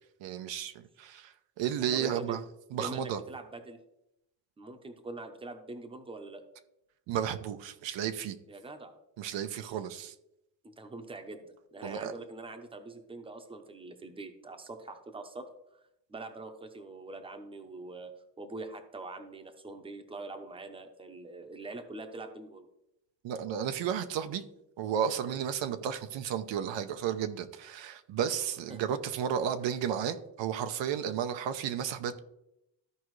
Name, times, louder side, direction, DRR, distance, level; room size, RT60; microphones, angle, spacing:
voice 1, 0.2-2.4 2.7-3.2 7.1-8.4 9.2-10.1 11.8-12.1 23.2-24.4 24.8-32.2, right 8 dB, 80° right, 9 dB, 0.8 m, -33 dB
voice 2, 1.9-2.4 2.8-3.8 4.6-6.4 8.5-8.9 10.6-11.5 11.7-15.8 16.1-18.1 18.4-22.7 28.7-28.8, right 2 dB, 10° right, 6 dB, 0.8 m, -43 dB
14.0 x 4.8 x 3.2 m, 0.84 s
cardioid pair, 145°, 44 cm